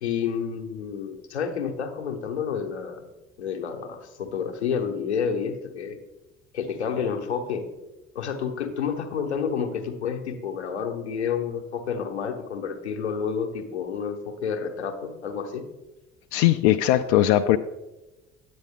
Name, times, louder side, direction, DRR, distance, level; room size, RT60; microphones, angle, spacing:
voice 1, 0.0-3.0 3.4-6.0 6.5-7.7 8.1-15.7, left 6 dB, 90° left, 5 dB, 1.0 m, -29 dB
voice 2, 16.3-17.6, left 13 dB, 70° left, 8 dB, 0.5 m, -19 dB
9.6 x 8.6 x 3.6 m, 1.0 s
hypercardioid pair, 60°, 33 cm